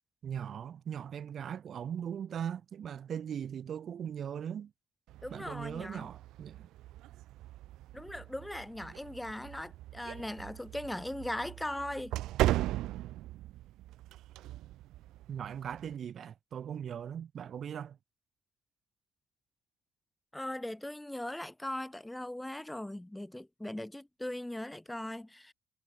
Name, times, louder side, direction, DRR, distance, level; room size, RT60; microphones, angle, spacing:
voice 1, 0.2-4.7 5.3-6.7 15.3-18.0, right 8 dB, 45° right, 3.1 m, -39 dB
sound 1, 5.1-16.0, right 15 dB, 75° right, 1.3 m, -38 dB
voice 2, 5.2-6.1 7.9-12.1 20.3-25.5, left 1 dB, 5° left, 3.1 m, -39 dB
cardioid pair, 140°, 0 cm